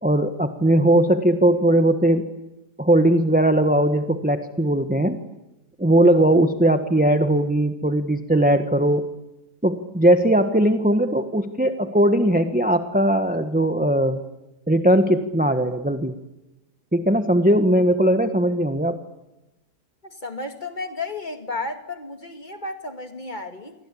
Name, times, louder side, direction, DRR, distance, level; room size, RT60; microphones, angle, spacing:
voice 1, 0.0-2.3 2.8-5.2 5.8-9.1 9.6-14.2 14.7-16.2 16.9-19.0, right 1 dB, 5° right, 8 dB, 1.2 m, -19 dB
voice 2, 20.0-23.7, left 3 dB, 30° left, 6 dB, 2.4 m, -33 dB
28.0 x 23.0 x 8.5 m, 0.97 s
omnidirectional pair, 1.8 m